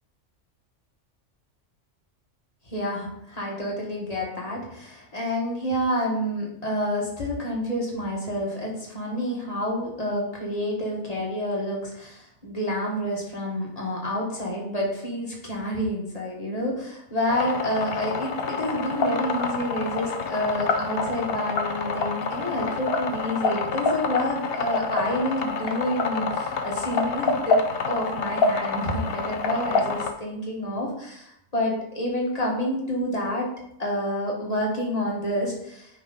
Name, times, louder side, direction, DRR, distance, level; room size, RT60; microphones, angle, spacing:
voice 1, 2.7-27.6 27.9-33.5 33.8-35.9, equal, 30° left, -2 dB, 1.5 m, -28 dB
sound 1, 17.3-30.1, left 4 dB, 60° left, 0.8 m, -27 dB
9.2 x 3.5 x 3.9 m, 0.76 s
omnidirectional pair, 1.3 m